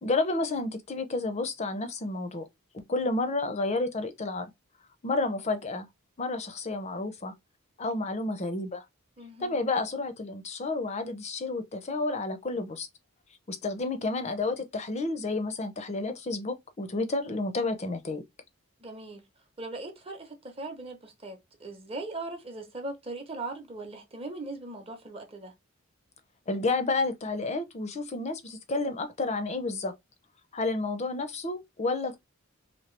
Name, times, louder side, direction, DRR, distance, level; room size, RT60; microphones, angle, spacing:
voice 1, 0.0-2.5 2.7-4.5 5.0-5.9 6.2-7.3 7.8-8.8 9.4-12.9 13.5-18.2 26.5-29.9 30.5-32.2, left 3 dB, 30° left, 0.5 m, -30 dB
voice 2, 9.2-9.7 18.8-19.3 19.6-25.5, right 2 dB, 25° right, 0.7 m, -39 dB
2.9 x 2.7 x 3.1 m
head